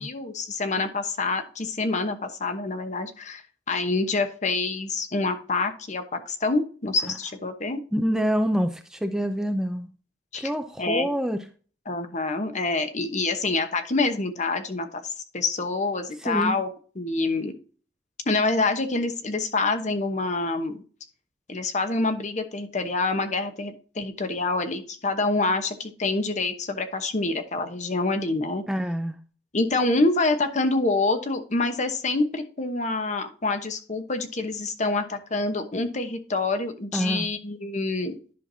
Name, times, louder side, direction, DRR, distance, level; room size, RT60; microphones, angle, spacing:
voice 1, 0.0-7.8 10.3-10.5 10.8-11.1 11.9-16.7 17.0-17.5 18.3-20.8 21.5-28.6 29.5-38.2, left 3 dB, 45° left, 7 dB, 1.0 m, -26 dB
voice 2, 7.9-9.9 10.4-11.4 16.2-16.6 28.7-29.2 36.9-37.3, equal, 5° right, 7 dB, 0.5 m, -26 dB
10.5 x 5.8 x 2.7 m, 0.40 s
head